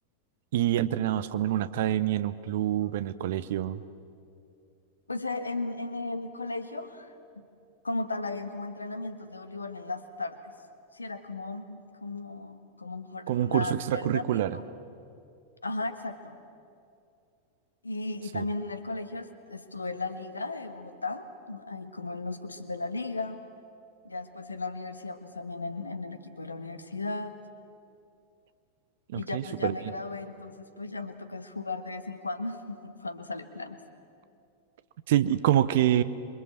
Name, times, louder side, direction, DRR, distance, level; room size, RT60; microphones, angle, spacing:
voice 1, 0.5-3.8 13.3-14.6 18.3-18.4 29.1-29.7 35.1-36.0, right 12 dB, 55° right, 15 dB, 0.9 m, -26 dB
voice 2, 5.1-7.4 7.8-10.5 10.9-14.6 15.6-16.4 17.8-23.4 24.0-27.4 29.1-33.8, left 3 dB, 80° left, 10 dB, 1.5 m, -36 dB
26.5 x 23.5 x 7.7 m, 2.5 s
figure-of-eight pair, 90°, 0 cm